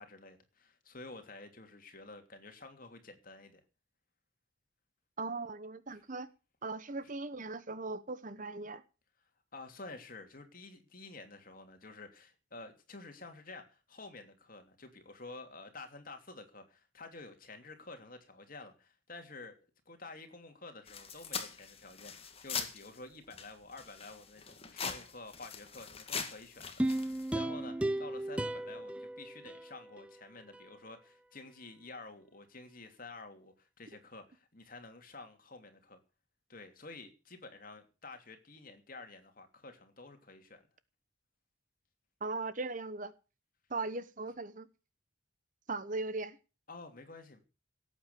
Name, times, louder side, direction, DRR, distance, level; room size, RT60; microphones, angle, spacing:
voice 1, 0.0-3.6 9.5-19.5 19.9-36.0 36.5-40.6 46.7-47.4, left 3 dB, 45° left, 2.9 m, -50 dB
voice 2, 5.2-6.3 6.6-8.8 42.2-43.1 43.7-44.7 45.7-46.4, right 3 dB, 40° right, 1.0 m, -38 dB
sound 1, 20.9-23.0 23.3-27.3, left 6 dB, 30° left, 1.9 m, -42 dB
sound 2, 26.8-30.1 30.5-30.6, right 1 dB, 5° right, 0.6 m, -35 dB
17.5 x 8.8 x 6.9 m
head